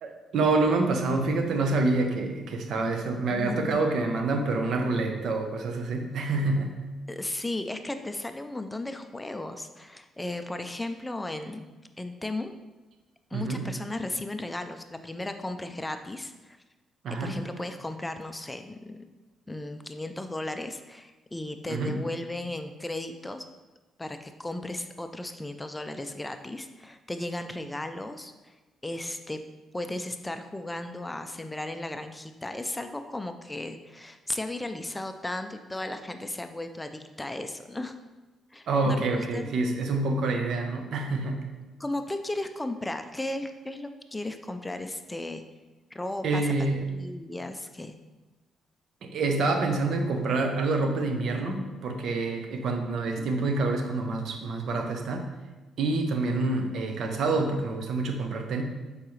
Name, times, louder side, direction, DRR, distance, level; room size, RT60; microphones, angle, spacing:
voice 1, 0.0-6.8 13.3-13.7 17.0-17.4 21.7-22.1 38.7-41.5 46.2-46.9 49.0-55.3 55.8-58.6, right 3 dB, 65° right, 4 dB, 0.9 m, -27 dB
voice 2, 3.3-3.9 7.1-11.6 12.0-12.5 13.3-16.6 17.2-19.0 19.5-23.5 24.0-28.5 28.8-29.4 29.7-37.9 38.5-39.1 39.3-39.5 41.8-45.4 45.9-46.5 46.9-48.0, left 2 dB, 15° left, 8 dB, 0.4 m, -35 dB
7.1 x 4.9 x 3.2 m, 1.2 s
cardioid pair, 90°, 0 cm